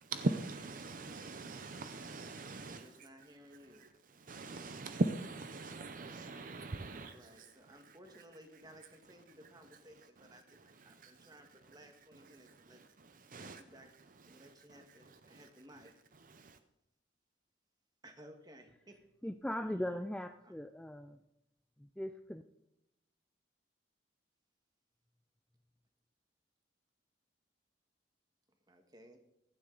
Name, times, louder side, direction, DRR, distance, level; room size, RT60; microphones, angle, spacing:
voice 1, 0.1-2.9 3.8-3.9 4.2-7.5 10.9-11.3 12.5-12.6 13.2-13.6 14.3-14.5 15.3-15.4 16.3-16.6, right 2 dB, 45° right, 0.6 m, -40 dB
voice 2, 2.6-3.9 6.9-12.8 13.4-13.9 14.2-15.9 18.0-19.3 19.7-19.9 20.4-20.5 28.7-29.2, equal, 20° right, 1.5 m, -58 dB
voice 3, 19.2-21.2 22.0-22.4, left 1 dB, 5° left, 0.3 m, -39 dB
16.0 x 11.5 x 3.9 m
head